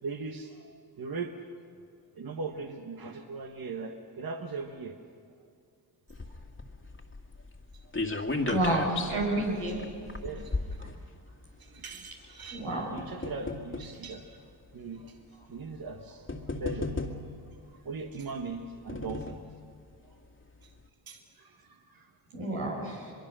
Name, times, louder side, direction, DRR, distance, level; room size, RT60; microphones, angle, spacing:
voice 1, 0.0-1.3 2.1-4.9 8.2-8.3 10.2-10.5 11.6-14.3 14.7-15.1 15.5-16.3 16.5-16.9 17.7-19.4 21.1-22.1, right 4 dB, 45° right, 4 dB, 1.6 m, -39 dB
sound 1, 6.1-11.6 12.4-14.0 14.8-14.9 15.9-16.0 16.3-17.5 18.4-19.5 19.9-20.0 20.3-20.4, left 2 dB, 25° left, 2.1 m, -35 dB
voice 2, 8.5-9.9 12.5-12.8 22.3-23.1, right 1 dB, 85° right, -2 dB, 6.4 m, -29 dB
23.5 x 22.5 x 6.4 m, 2.3 s
supercardioid pair, 50°, 50 cm